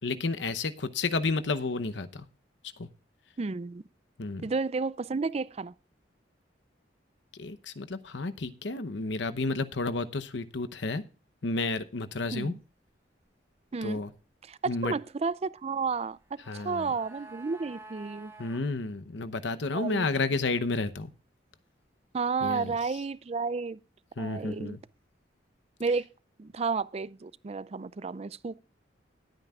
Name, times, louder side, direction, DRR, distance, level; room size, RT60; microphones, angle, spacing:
voice 1, 0.0-2.2 2.8-2.9 4.2-4.4 7.4-11.0 11.4-12.5 13.8-14.1 14.7-14.9 16.5-16.9 18.4-21.1 22.4-22.7 24.2-24.8, left 3 dB, 80° left, 0.9 m, -31 dB
voice 2, 3.4-3.8 4.4-5.7 12.3-12.6 13.7-14.0 14.5-18.3 19.7-20.1 22.1-23.8 24.2-24.8 25.8-26.1 26.4-28.6, right 4 dB, 35° right, 0.4 m, -32 dB
sound 1, 16.1-18.7 18.9-19.0, right 2 dB, 15° right, 2.8 m, -49 dB
20.0 x 9.1 x 2.4 m
head